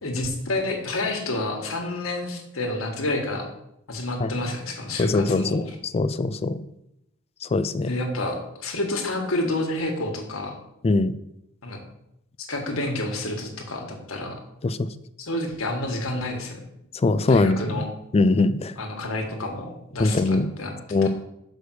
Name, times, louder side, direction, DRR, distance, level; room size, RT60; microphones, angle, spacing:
voice 1, 0.0-3.5 3.9-5.6 7.9-10.6 11.6-11.8 12.5-14.4 15.2-16.6 17.3-17.9 18.7-20.7 21.0-21.1, left 2 dB, 80° left, 2 dB, 1.6 m, -29 dB
voice 2, 5.0-5.6 5.9-6.6 7.4-7.9 10.8-11.1 14.6-14.9 16.9-17.6 18.1-18.7 20.0-20.5 20.9-21.1, left 3 dB, 30° left, 13 dB, 0.4 m, -21 dB
6.3 x 5.1 x 6.3 m, 0.82 s
head